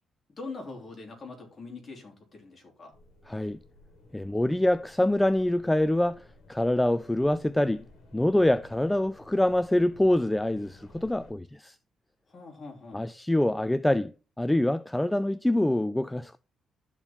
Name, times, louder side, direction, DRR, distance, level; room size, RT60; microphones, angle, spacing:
voice 1, 0.4-2.9 12.3-13.1, left 3 dB, 35° left, 3.2 m, -43 dB
sound 1, 2.9-11.3, left 2 dB, 70° left, 2.0 m, -55 dB
voice 2, 3.3-3.6 4.1-7.8 8.1-11.8 12.9-14.1 14.4-16.4, left 1 dB, 10° left, 0.3 m, -25 dB
12.5 x 4.4 x 3.6 m
cardioid pair, 90°, 0 cm